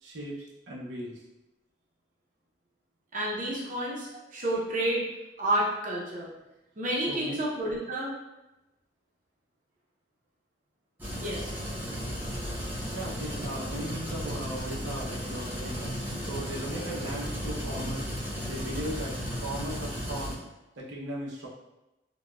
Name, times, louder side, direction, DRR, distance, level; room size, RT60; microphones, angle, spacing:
voice 1, 0.0-1.2 4.1-4.2 7.1-7.4 12.9-15.9 16.2-18.0 18.4-19.1 19.4-20.4 20.8-21.5, right 1 dB, 85° right, -3 dB, 0.6 m, -37 dB
voice 2, 3.1-5.1 5.4-6.3 6.8-8.1 11.2-11.6, right 1 dB, 45° right, -5 dB, 0.6 m, -30 dB
sound 1, 11.0-20.3, equal, 10° right, 0.7 m, -35 dB
4.0 x 2.2 x 2.2 m, 0.97 s
head